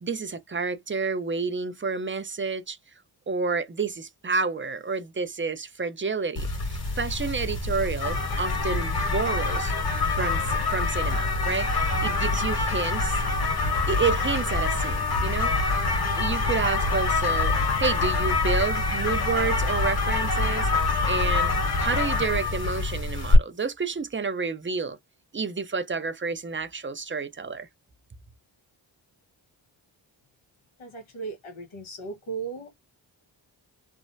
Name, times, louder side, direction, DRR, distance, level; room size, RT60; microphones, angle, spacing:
voice 1, 0.0-2.8 3.3-9.7 10.1-13.2 13.9-15.8 16.2-21.5 21.8-25.0 25.3-27.7, right 4 dB, 25° right, 0.7 m, -30 dB
sound 1, 6.4-23.4, left 3 dB, 50° left, 1.8 m, -25 dB
voice 2, 30.8-32.7, right 5 dB, 90° left, 1.6 m, -36 dB
3.3 x 2.0 x 2.6 m
cardioid pair, 50°, 47 cm